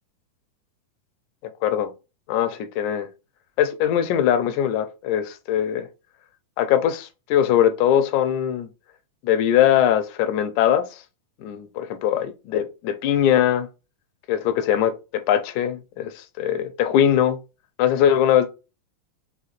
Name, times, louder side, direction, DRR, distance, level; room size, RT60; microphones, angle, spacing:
voice 1, 1.4-1.9 2.3-3.1 3.6-5.9 6.6-8.7 9.2-11.0 11.4-13.7 14.3-17.4 17.8-18.5, left 10 dB, 80° left, 2.0 m, -21 dB
5.7 x 3.3 x 2.4 m
omnidirectional pair, 3.4 m